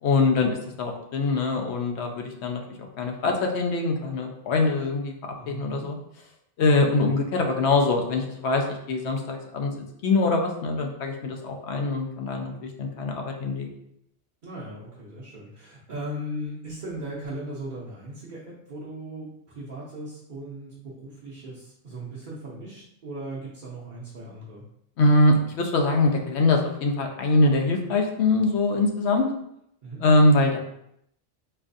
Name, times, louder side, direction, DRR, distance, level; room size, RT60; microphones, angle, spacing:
voice 1, 0.0-6.0 6.6-13.7 25.0-29.3 30.0-30.6, left 2 dB, 85° left, 2 dB, 0.9 m, -23 dB
voice 2, 5.4-5.9 14.4-24.6 29.8-30.0, right 1 dB, 50° right, -6 dB, 0.8 m, -38 dB
4.5 x 2.4 x 2.6 m, 0.75 s
omnidirectional pair, 1.1 m